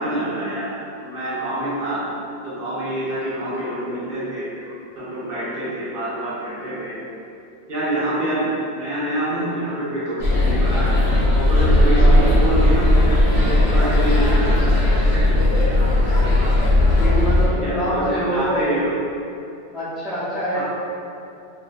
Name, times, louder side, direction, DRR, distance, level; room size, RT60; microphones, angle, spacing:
voice 1, 0.0-2.0 2.4-7.0 7.7-10.9 11.3-13.1 13.4-16.9 17.6-18.9 20.5-20.6, right 1 dB, 60° right, -9 dB, 0.7 m, -27 dB
sound 1, 10.2-17.5, left 1 dB, 90° left, 0.9 m, -16 dB
voice 2, 11.9-12.2 17.0-18.6 19.7-20.6, equal, ahead, -11 dB, 0.5 m, -25 dB
2.3 x 2.2 x 2.4 m, 2.6 s
omnidirectional pair, 1.2 m